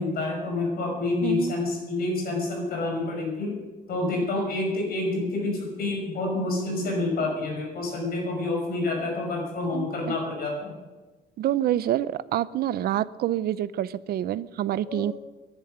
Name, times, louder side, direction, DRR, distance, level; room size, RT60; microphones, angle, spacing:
voice 1, 0.0-3.6 3.9-10.7 14.8-15.1, left 2 dB, 55° left, 1 dB, 5.8 m, -28 dB
voice 2, 1.2-1.5 9.7-10.2 11.4-15.1, right 12 dB, 60° right, 17 dB, 0.6 m, -27 dB
11.5 x 10.5 x 10.0 m, 1.3 s
cardioid pair, 155°, 18 cm